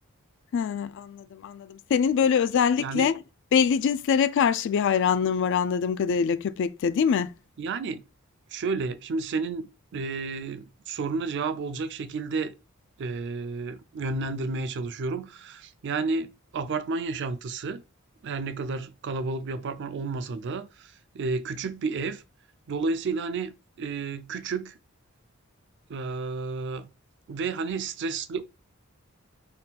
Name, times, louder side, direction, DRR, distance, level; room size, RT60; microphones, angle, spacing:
voice 1, 0.5-3.1 3.5-7.3, left 7 dB, 60° left, 0.3 m, -24 dB
voice 2, 2.8-3.1 7.6-8.0 8.5-12.5 13.0-17.8 18.2-22.2 22.7-24.8 25.9-26.9 27.3-28.4, right 4 dB, 55° right, 0.4 m, -31 dB
3.7 x 2.3 x 4.1 m
head